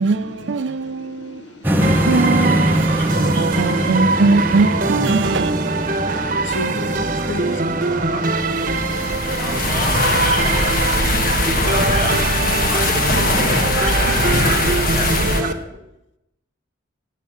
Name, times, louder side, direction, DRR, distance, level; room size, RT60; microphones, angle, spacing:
voice 1, 0.0-1.4 2.1-5.7, right 3 dB, 65° right, 0.5 m, -20 dB
voice 2, 0.8-1.7 2.9-3.3 3.7-3.8 5.6-7.8 8.6-8.7, left 1 dB, 65° left, 0.6 m, -34 dB
sound 1, 1.6-15.6, equal, 10° right, 0.7 m, -25 dB
sound 2, 1.8-15.5, right 3 dB, 45° right, 0.9 m, -23 dB
voice 3, 3.3-3.9 5.9-6.0 7.2-7.4 8.1-8.2 9.4-12.9 13.3-15.8, equal, 10° left, 2.0 m, -32 dB
sound 3, 8.6-15.4, left 2 dB, 45° left, 1.2 m, -20 dB
10.5 x 7.4 x 8.2 m
head